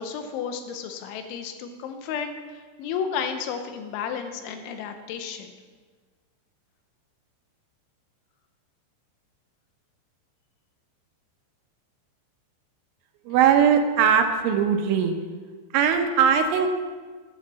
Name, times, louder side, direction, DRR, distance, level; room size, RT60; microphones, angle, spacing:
voice 1, 0.0-5.5, left 7 dB, 80° left, 7 dB, 3.1 m, -32 dB
voice 2, 13.3-15.1 15.7-16.7, right 7 dB, 80° right, 5 dB, 3.2 m, -20 dB
10.0 x 6.5 x 7.4 m, 1.5 s
omnidirectional pair, 5.6 m